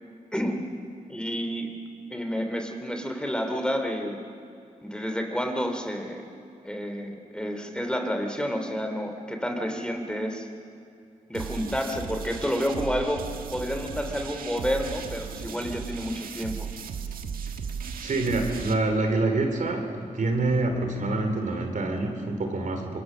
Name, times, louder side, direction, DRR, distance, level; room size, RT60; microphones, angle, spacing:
voice 1, 0.3-0.7 1.1-4.2 4.8-6.3 6.6-10.5 11.3-16.7, equal, 5° left, 5 dB, 2.9 m, -30 dB
sound 1, 11.3-18.7, right 6 dB, 90° right, 1.5 m, -36 dB
voice 2, 18.0-23.0, right 2 dB, 65° right, 4 dB, 3.5 m, -26 dB
26.0 x 22.0 x 6.3 m, 2.4 s
cardioid pair, 60°, 14 cm